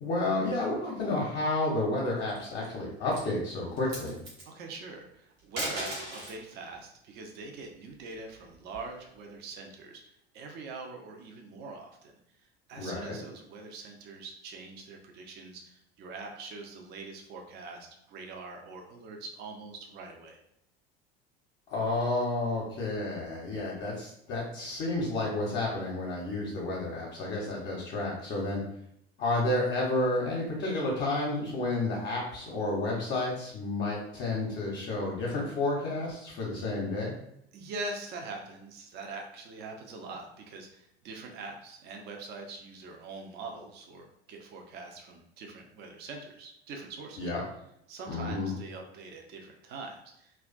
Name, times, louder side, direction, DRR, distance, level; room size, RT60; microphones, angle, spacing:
voice 1, 0.0-4.2 12.8-13.1 21.7-28.6 29.2-37.1 47.2-47.4 48.1-48.5, left 2 dB, 40° left, -4 dB, 0.7 m, -31 dB
sound 1, 2.2-2.7 3.0-3.3 3.7-4.5 5.4-6.4 7.9-9.1, right 1 dB, 75° right, 1.0 m, -38 dB
voice 2, 4.5-10.0 10.3-12.1 12.4-20.4 37.5-47.3 47.9-50.3, right 3 dB, 35° right, 2 dB, 0.5 m, -43 dB
2.4 x 2.2 x 2.3 m, 0.76 s
figure-of-eight pair, 70°, 30 cm